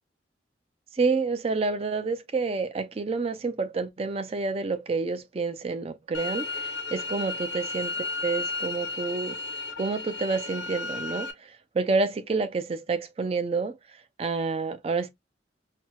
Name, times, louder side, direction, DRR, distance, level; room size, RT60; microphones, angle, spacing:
voice 1, 0.9-9.4 9.8-13.8 14.2-15.1, right 4 dB, 35° right, 0.4 m, -29 dB
sound 1, 6.1-11.3, left 3 dB, 85° left, 0.6 m, -33 dB
4.2 x 2.0 x 2.2 m
head